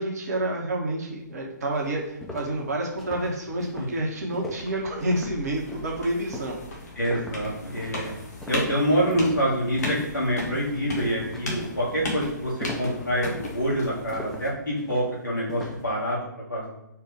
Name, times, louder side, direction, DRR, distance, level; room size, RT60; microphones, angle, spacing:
voice 1, 0.0-6.6, right 1 dB, 55° right, 0 dB, 1.0 m, -29 dB
sound 1, 1.2-1.3 1.7-10.2 10.5-10.8 11.2-15.9, left 1 dB, 5° left, 0.5 m, -41 dB
sound 2, 4.5-14.5, left 2 dB, 55° left, 1.2 m, -37 dB
voice 2, 7.0-8.1 8.5-16.7, equal, 80° left, -5 dB, 1.6 m, -26 dB
4.6 x 2.3 x 4.8 m, 0.86 s
figure-of-eight pair, 130°, 10 cm